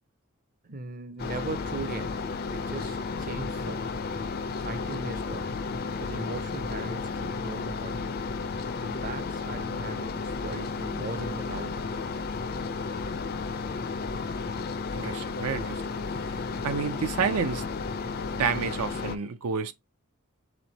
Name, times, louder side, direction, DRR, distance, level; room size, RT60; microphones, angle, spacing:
voice 1, 0.6-2.2 2.5-3.9 4.6-5.5 6.0-8.0 8.8-12.1, right 3 dB, 40° right, 0.5 m, -39 dB
sound 1, 1.2-19.2, left 4 dB, 45° left, 0.4 m, -33 dB
voice 2, 14.9-15.8 16.6-17.6 18.4-19.7, right 6 dB, 85° right, 0.5 m, -29 dB
3.5 x 3.1 x 3.9 m
head